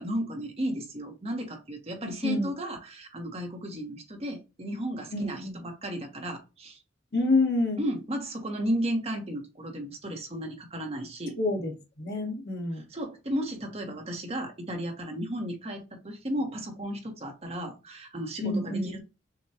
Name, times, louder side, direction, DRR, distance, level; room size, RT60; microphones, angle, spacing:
voice 1, 0.0-6.8 7.8-11.4 12.9-19.0, equal, 35° right, 1.0 m, -34 dB
voice 2, 2.0-2.5 5.1-5.6 7.1-7.8 11.4-12.8 18.4-19.0, left 2 dB, 55° left, 1.3 m, -28 dB
6.4 x 2.2 x 2.8 m
head